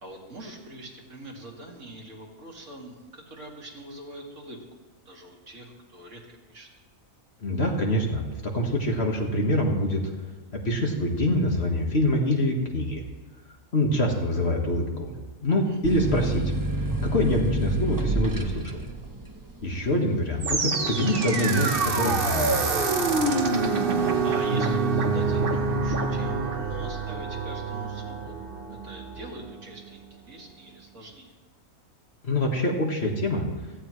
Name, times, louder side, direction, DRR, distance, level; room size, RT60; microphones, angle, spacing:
voice 1, 0.0-4.6 5.1-6.7 15.6-16.0 23.2-23.7 23.9-31.3, right 1 dB, 60° right, -1 dB, 2.4 m, -43 dB
voice 2, 7.4-10.0 10.5-13.0 13.7-15.1 15.4-16.5 17.0-18.8 19.6-22.7 32.2-33.5, left 1 dB, 50° left, 1 dB, 1.8 m, -25 dB
sound 1, 15.8-23.1 23.5-24.3, right 1 dB, 15° right, 0.9 m, -30 dB
sound 2, 20.4-29.6, right 3 dB, 45° right, 1.2 m, -26 dB
17.0 x 14.0 x 3.2 m, 1.3 s
omnidirectional pair, 1.5 m